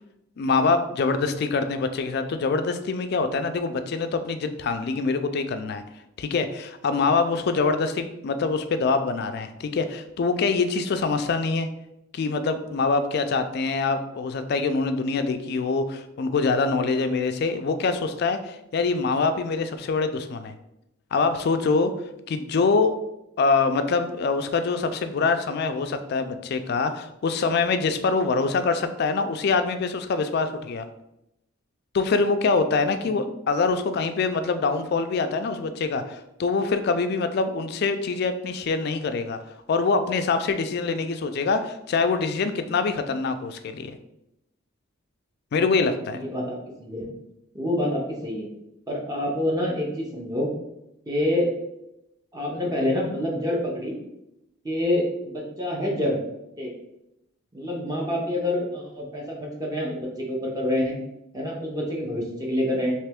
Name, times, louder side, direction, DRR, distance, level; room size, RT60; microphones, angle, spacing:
voice 1, 0.4-5.8 6.2-11.7 12.1-20.5 21.1-21.9 22.3-23.0 23.4-30.9 31.9-39.4 39.7-44.0 45.5-46.2, left 4 dB, 50° left, 9 dB, 0.3 m, -24 dB
voice 2, 45.8-47.1 47.5-48.5 48.9-50.5 51.1-51.5 52.3-53.9 54.6-56.2 56.6-56.7 57.5-61.0 61.3-62.9, left 1 dB, 15° right, -2 dB, 0.6 m, -27 dB
3.3 x 2.9 x 3.4 m, 0.86 s
head